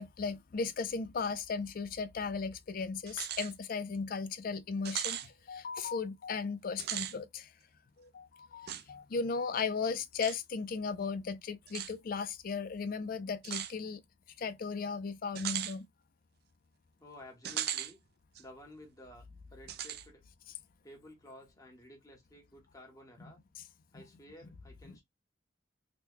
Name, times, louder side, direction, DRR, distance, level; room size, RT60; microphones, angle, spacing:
voice 1, 0.0-7.5 8.0-14.0 14.4-15.9, left 5 dB, 50° left, 0.4 m, -36 dB
sound 1, 3.1-3.5 3.9-4.0 4.9-5.3 6.7-7.2 8.7-8.8 10.2-10.4 11.7-11.9 13.4-13.7 15.4-15.8 17.4-17.9 18.4-18.5 19.7-20.1, right 11 dB, 55° right, 0.3 m, -37 dB
voice 2, 17.0-18.0 18.4-19.3 19.5-20.2 20.8-23.4 23.9-25.0, left 1 dB, 20° left, 1.1 m, -53 dB
3.0 x 2.1 x 3.4 m
head